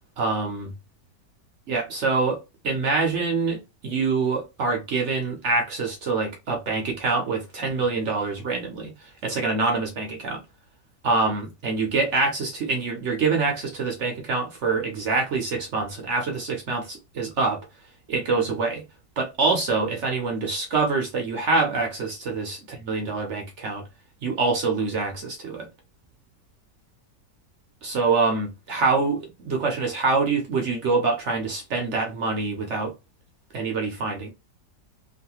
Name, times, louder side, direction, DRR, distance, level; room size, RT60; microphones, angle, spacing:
voice 1, 0.2-0.7 1.7-2.4 2.6-10.4 11.0-17.6 18.1-18.8 19.2-23.8 24.2-25.7 27.8-32.9 33.5-34.3, right 4 dB, 65° right, 0.7 m, -25 dB
3.1 x 2.3 x 2.8 m
omnidirectional pair, 1.9 m